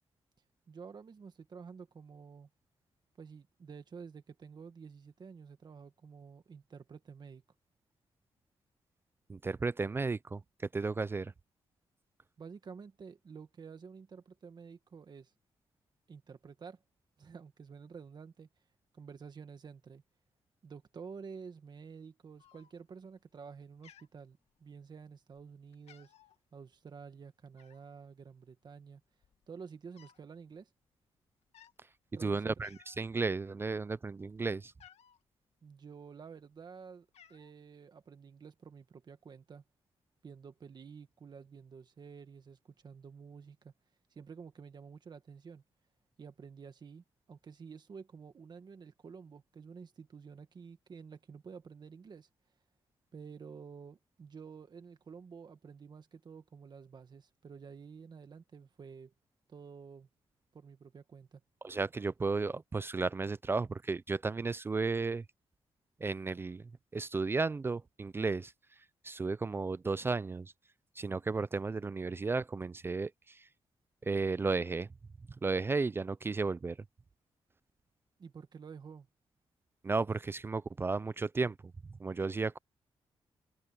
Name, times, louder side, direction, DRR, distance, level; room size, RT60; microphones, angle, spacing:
voice 1, 0.7-2.5 3.2-7.4 12.4-15.3 16.1-16.8 17.2-18.5 18.9-20.0 20.6-26.1 26.5-29.0 29.5-30.7 32.1-32.5 35.6-39.6 40.2-43.7 44.1-45.6 46.2-52.3 53.1-59.1 59.5-60.1 60.5-61.4 78.2-79.1, right 6 dB, 45° right, 1.8 m, -50 dB
voice 2, 9.3-10.4 10.7-11.3 32.2-34.7 61.6-65.2 66.0-68.5 69.0-70.5 71.0-73.4 74.0-74.9 75.4-76.8 79.8-81.6 82.0-82.6, right 4 dB, 20° right, 0.3 m, -34 dB
Cat, 22.4-23.0 23.4-23.6 23.8-24.9 25.3-25.5 25.7-26.4 27.6-28.0 28.8-28.9 29.1-30.3 30.6-30.8 31.4-31.8 32.2-32.3 32.6-33.1 33.5-35.2 36.0-36.6 36.9-37.5, left 9 dB, 85° left, 1.9 m, -61 dB
wide cardioid pair, 150°, 11 cm